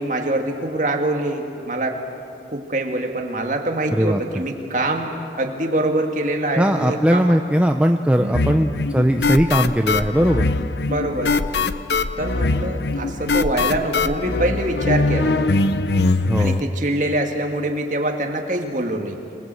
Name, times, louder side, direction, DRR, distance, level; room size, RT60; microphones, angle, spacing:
voice 1, 0.0-2.0 2.5-7.4 8.2-8.6 10.9-11.4 12.2-15.4 16.4-19.2, right 1 dB, 45° right, 2 dB, 2.3 m, -24 dB
voice 2, 3.9-4.4 6.6-10.5 16.3-16.6, equal, 5° right, 4 dB, 0.6 m, -19 dB
sound 1, 8.3-16.6, left 3 dB, 75° left, 0.8 m, -22 dB
26.5 x 20.0 x 7.8 m, 2.6 s
head